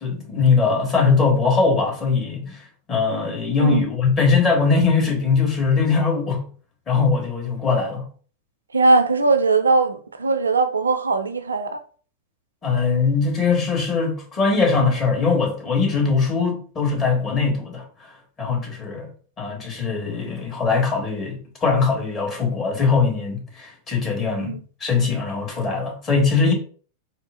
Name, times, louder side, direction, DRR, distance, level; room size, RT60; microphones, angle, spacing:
voice 1, 0.0-2.6 2.9-6.5 6.9-8.0 12.6-17.8 18.4-19.1 19.4-26.5, left 4 dB, 25° left, 1.2 m, -21 dB
voice 2, 8.7-11.8 24.4-24.6, right 3 dB, 75° right, 0.4 m, -19 dB
3.7 x 2.6 x 2.4 m
figure-of-eight pair, 90°, 0 cm